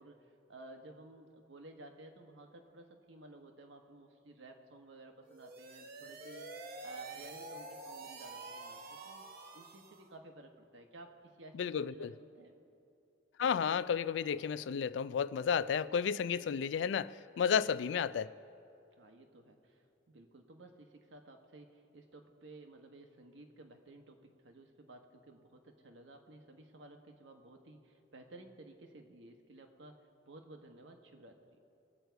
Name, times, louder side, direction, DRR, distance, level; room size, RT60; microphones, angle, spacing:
voice 1, 0.0-9.3 9.5-12.6 17.5-17.8 19.0-31.6, right 2 dB, 80° right, 4 dB, 1.2 m, -55 dB
sound 1, 5.3-10.1, right 3 dB, 55° right, 1.0 m, -47 dB
voice 2, 11.5-12.1 13.4-18.3, left 7 dB, 70° left, 16 dB, 0.3 m, -32 dB
21.5 x 8.0 x 4.6 m, 2.7 s
head